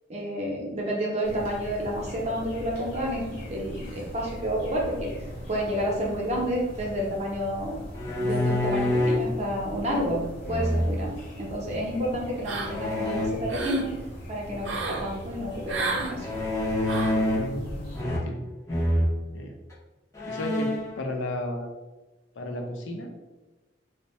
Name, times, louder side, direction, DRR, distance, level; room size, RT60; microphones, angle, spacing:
voice 1, 0.1-5.1 5.5-7.8 8.2-10.2 10.5-11.1 11.4-13.9 14.3-16.3, equal, 35° right, -2 dB, 0.6 m, -30 dB
sound 1, 1.2-18.0, equal, 65° left, 0.9 m, -41 dB
sound 2, 7.9-9.3 10.4-11.2 12.7-13.3 16.2-17.6 17.9-18.4 18.7-19.1 19.7-19.8 20.1-20.9, left 1 dB, 15° left, 0.5 m, -26 dB
sound 3, 12.4-13.0 13.3-13.9 14.6-15.0 15.7-16.1 16.8-17.2, right 3 dB, 80° right, 0.5 m, -31 dB
voice 2, 17.3-18.4 18.7-18.9 19.3-19.5 20.3-20.7 21.0-21.7 22.4-23.1, left 1 dB, 90° left, 3 dB, 0.5 m, -34 dB
2.6 x 2.0 x 3.1 m, 1.1 s
head